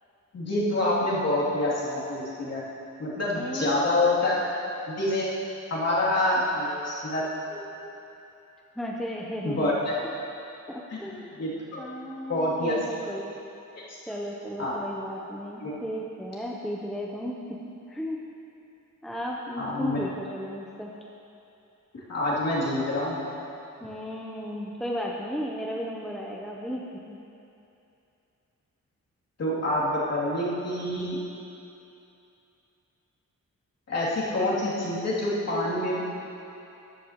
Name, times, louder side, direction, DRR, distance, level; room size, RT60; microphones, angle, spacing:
voice 1, 0.3-2.6 3.0-4.4 4.9-5.3 5.7-7.6 9.4-9.9 10.9-11.8 12.3-12.7 13.9-14.0 14.6-14.8 15.6-15.7 19.6-20.0 22.1-23.2 29.4-31.2 33.9-36.0, left 1 dB, 50° left, -7 dB, 2.6 m, -27 dB
voice 2, 3.4-3.9 8.8-9.7 10.7-11.3 11.8-13.3 14.1-17.6 17.9-18.2 19.0-20.9 23.8-26.8, equal, ahead, -2 dB, 0.6 m, -34 dB
13.0 x 11.5 x 2.9 m, 2.8 s
wide cardioid pair, 165°, 32 cm